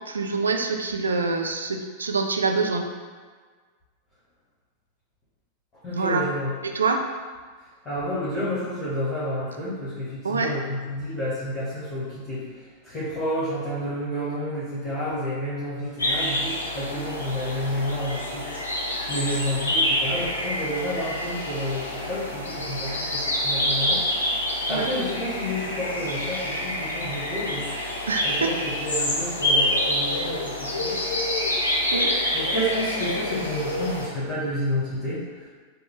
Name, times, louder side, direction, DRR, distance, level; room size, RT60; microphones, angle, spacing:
voice 1, 0.1-2.9 6.0-6.2 6.6-7.0 10.2-10.5 24.7-24.9 28.1-28.5 31.9-32.1, right 4 dB, 75° right, 4 dB, 0.3 m, -25 dB
voice 2, 5.8-6.5 7.8-24.1 24.7-27.7 28.2-31.0 31.9-35.5, equal, 20° left, -12 dB, 1.3 m, -30 dB
sound 1, 16.0-34.1, left 1 dB, 75° left, 0.6 m, -27 dB
3.6 x 2.2 x 3.7 m, 1.5 s
figure-of-eight pair, 90°, 0 cm